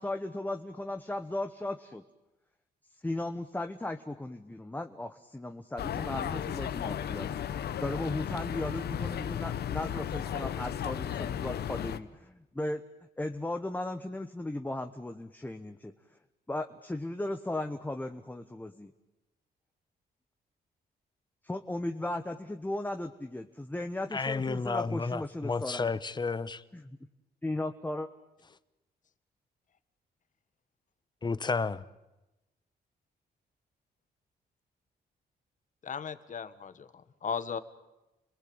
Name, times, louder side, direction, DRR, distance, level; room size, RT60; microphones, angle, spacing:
voice 1, 0.0-2.0 3.0-12.8 13.2-15.9 16.5-18.9 21.4-25.9 26.7-27.0 27.4-28.1, left 1 dB, 10° left, 1.2 m, -36 dB
sound 1, 5.8-12.0, left 9 dB, 70° left, 1.1 m, -34 dB
voice 2, 24.1-26.6 31.2-31.8, left 4 dB, 25° left, 1.0 m, -31 dB
voice 3, 35.8-37.6, left 6 dB, 50° left, 1.6 m, -37 dB
29.5 x 19.5 x 8.8 m
cardioid pair, 105°, 17 cm